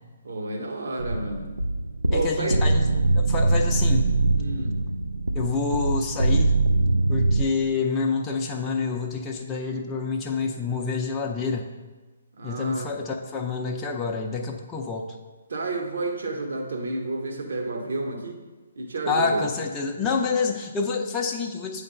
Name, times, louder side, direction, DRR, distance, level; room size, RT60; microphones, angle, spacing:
voice 1, 0.2-1.4 2.1-2.6 4.4-4.8 12.3-12.9 15.5-18.4 18.7-19.5, right 2 dB, 60° right, 2 dB, 1.1 m, -30 dB
sound 1, 1.0-7.5, right 2 dB, 80° right, 0.4 m, -23 dB
voice 2, 2.1-2.9 3.2-4.1 5.3-6.6 7.1-11.7 12.4-15.2 19.1-21.8, left 4 dB, 15° left, 0 dB, 0.5 m, -27 dB
8.5 x 3.3 x 5.3 m, 1.3 s
figure-of-eight pair, 135°, 0 cm